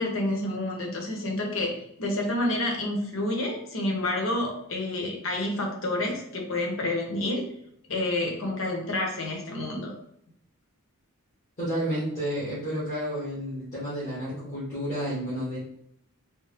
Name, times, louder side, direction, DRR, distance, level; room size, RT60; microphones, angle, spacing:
voice 1, 0.0-1.7 2.0-7.4 7.9-9.9, left 1 dB, 65° left, 0 dB, 1.0 m, -29 dB
voice 2, 11.6-15.6, equal, 35° left, -10 dB, 1.5 m, -31 dB
3.5 x 3.0 x 3.2 m, 0.72 s
head